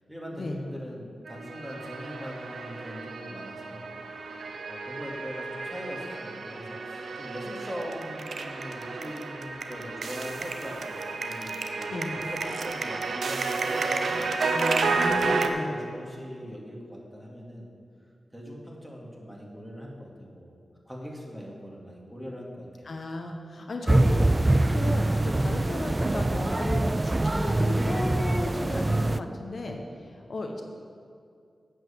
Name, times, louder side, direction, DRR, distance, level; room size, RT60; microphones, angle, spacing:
voice 1, 0.1-3.9 4.7-14.4 15.1-17.7 18.3-20.5 20.9-22.9, equal, 5° right, -3 dB, 2.5 m, -41 dB
sound 1, 1.3-15.5, right 4 dB, 75° right, 0.6 m, -31 dB
voice 2, 14.5-15.7 22.8-30.6, left 2 dB, 65° left, 3 dB, 0.9 m, -35 dB
sound 2, 23.9-29.2, right 2 dB, 30° right, 0.3 m, -24 dB
9.0 x 5.6 x 7.1 m, 2.3 s
cardioid pair, 45°, 0 cm